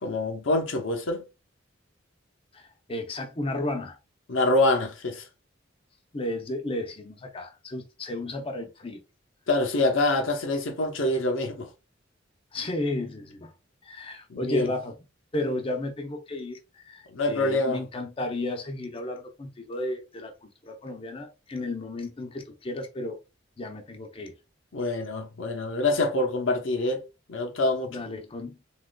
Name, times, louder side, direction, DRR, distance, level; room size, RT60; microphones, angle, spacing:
voice 1, 0.0-1.2 4.3-5.2 9.5-11.7 14.3-14.7 17.1-17.8 24.7-27.0 27.3-28.0, left 2 dB, 85° left, 0.7 m, -25 dB
voice 2, 2.5-4.0 6.1-9.0 12.5-13.5 13.8-15.0 15.3-23.2 23.6-24.3 27.9-28.6, left 2 dB, 30° left, 0.6 m, -33 dB
3.7 x 2.9 x 2.2 m
head